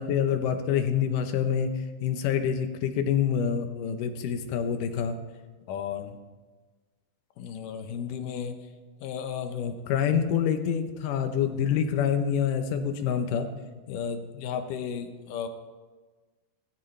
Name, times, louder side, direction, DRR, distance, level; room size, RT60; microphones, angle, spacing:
voice 1, 0.0-5.2 5.7-6.2 7.4-8.6 9.0-13.5 13.9-15.5, left 8 dB, 75° left, 7 dB, 2.4 m, -28 dB
17.5 x 14.0 x 3.3 m, 1.3 s
omnidirectional pair, 3.9 m